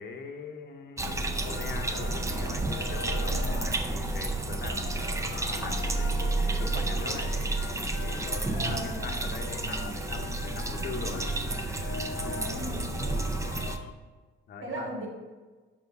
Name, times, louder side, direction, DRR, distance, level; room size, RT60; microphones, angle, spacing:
voice 1, 0.0-7.4 8.0-11.3 14.5-14.9, left 4 dB, 55° left, 4 dB, 0.7 m, -41 dB
sound 1, 1.0-13.9, left 7 dB, 90° left, 0.4 m, -41 dB
sound 2, 1.0-13.8, right 2 dB, 15° right, 0.4 m, -31 dB
voice 2, 8.5-9.2 12.3-13.1 14.6-15.1, right 1 dB, 70° right, -2 dB, 1.7 m, -38 dB
5.8 x 4.3 x 5.3 m, 1.3 s
cardioid pair, 140°, 21 cm